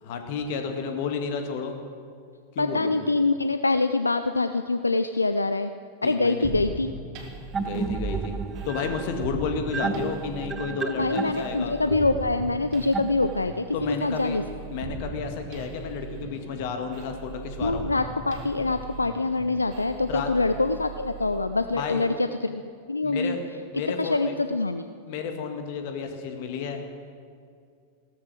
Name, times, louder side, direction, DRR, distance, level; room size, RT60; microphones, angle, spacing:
voice 1, 0.0-1.8 2.5-3.0 6.0-6.5 7.6-8.4 8.7-11.7 13.7-14.4 14.7-17.9 20.1-20.3 21.7-22.1 23.0-23.4 23.7-24.3 25.1-26.9, left 5 dB, 50° left, 5 dB, 1.9 m, -31 dB
voice 2, 2.6-5.7 6.0-6.9 10.9-14.4 17.6-22.6 22.9-23.3 24.0-24.8, left 3 dB, 80° left, 10 dB, 0.5 m, -25 dB
sound 1, 6.4-22.1, right 5 dB, 45° right, 2.3 m, -40 dB
sound 2, 7.5-13.7, right 5 dB, 20° right, 0.5 m, -33 dB
17.0 x 13.5 x 6.4 m, 2.3 s
figure-of-eight pair, 90°, 0 cm